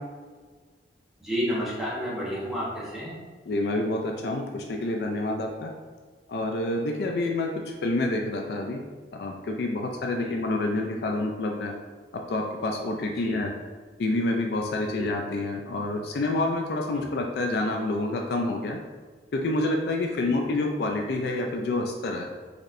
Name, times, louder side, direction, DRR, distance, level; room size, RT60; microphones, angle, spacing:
voice 1, 1.2-3.2 10.2-10.3 13.1-13.5 14.9-15.1 17.0-17.1 20.2-20.3, equal, ahead, -8 dB, 1.0 m, -31 dB
voice 2, 3.5-5.7 6.3-8.8 9.1-11.7 12.1-13.5 14.0-18.8 19.3-22.3, left 2 dB, 60° left, 2 dB, 0.3 m, -28 dB
4.2 x 3.0 x 2.6 m, 1.4 s
head